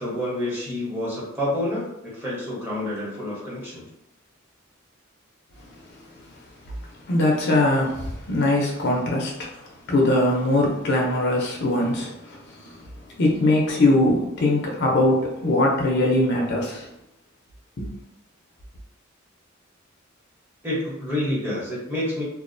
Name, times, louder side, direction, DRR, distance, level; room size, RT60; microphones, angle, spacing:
voice 1, 0.0-1.9 2.1-3.8 20.6-22.2, left 1 dB, 10° right, -7 dB, 0.9 m, -28 dB
voice 2, 7.1-9.5 9.9-12.1 13.2-16.9 17.8-17.9, left 1 dB, 60° left, -1 dB, 0.5 m, -21 dB
2.4 x 2.0 x 2.5 m, 0.82 s
head